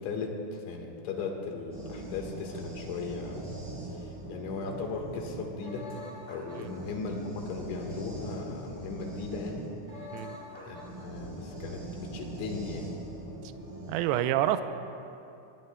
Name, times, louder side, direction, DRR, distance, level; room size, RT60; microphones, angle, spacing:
voice 1, 0.0-3.6 3.9-5.9 6.3-9.7 10.7-12.9, left 4 dB, 90° left, 2 dB, 3.9 m, -37 dB
sound 1, 1.7-14.0, right 1 dB, 5° right, 3.7 m, -42 dB
voice 2, 13.9-14.6, right 12 dB, 85° right, 9 dB, 2.3 m, -27 dB
23.5 x 20.5 x 2.2 m, 2.7 s
omnidirectional pair, 5.1 m